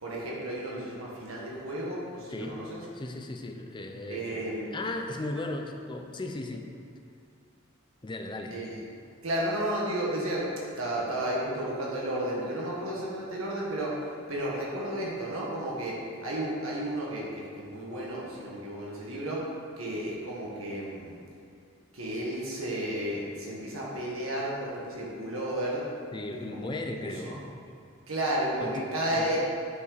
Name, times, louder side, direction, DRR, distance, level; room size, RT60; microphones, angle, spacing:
voice 1, 0.0-2.8 4.1-4.9 8.5-8.8 9.2-10.5 10.8-19.4 19.8-21.2 21.9-25.9 26.5-27.4 28.1-29.4, right 1 dB, 80° right, -5 dB, 1.6 m, -33 dB
voice 2, 2.9-4.3 4.7-6.7 8.0-8.6 26.1-27.4 28.6-28.9, left 2 dB, 25° left, 4 dB, 0.6 m, -36 dB
9.8 x 5.5 x 4.1 m, 2.5 s
head